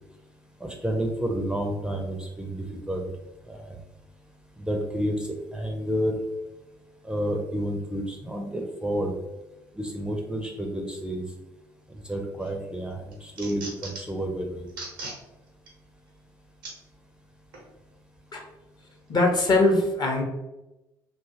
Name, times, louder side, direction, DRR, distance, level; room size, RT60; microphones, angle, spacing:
voice 1, 0.6-3.1 3.5-3.8 4.6-6.2 7.0-9.1 9.7-11.3 12.1-14.7, equal, 5° right, 2 dB, 0.5 m, -30 dB
sound 1, 12.1-12.5 12.9-14.2 14.7-15.2 15.7-15.8 16.6-16.8 17.5-17.7, right 3 dB, 85° right, 0.7 m, -38 dB
voice 2, 19.1-20.2, left 2 dB, 40° left, 2 dB, 0.7 m, -21 dB
2.7 x 2.4 x 2.7 m, 0.98 s
hypercardioid pair, 50°, 11 cm